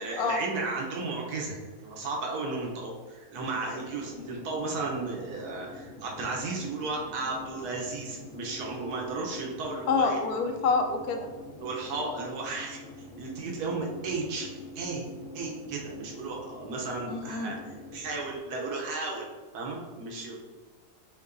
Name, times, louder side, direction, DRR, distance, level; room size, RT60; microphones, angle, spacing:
voice 1, 0.0-10.2 11.6-12.8 13.2-15.1 15.3-20.4, right 3 dB, 90° right, -1 dB, 1.3 m, -34 dB
sound 1, 3.3-18.4, left 2 dB, 40° left, 0.9 m, -46 dB
voice 2, 9.9-11.3 17.1-17.6, left 4 dB, 80° left, 5 dB, 1.1 m, -27 dB
4.6 x 3.6 x 2.5 m, 1.3 s
omnidirectional pair, 1.6 m